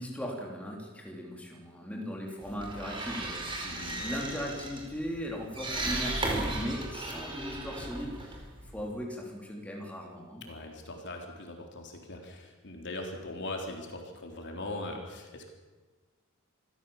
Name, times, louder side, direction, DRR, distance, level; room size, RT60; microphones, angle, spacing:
voice 1, 0.0-10.4, equal, 5° left, -1 dB, 3.6 m, -38 dB
sound 1, 2.4-8.9, right 2 dB, 25° right, 4.7 m, -36 dB
voice 2, 3.6-4.1 10.4-15.5, left 2 dB, 55° left, 2 dB, 3.8 m, -40 dB
26.0 x 15.5 x 7.3 m, 1.3 s
head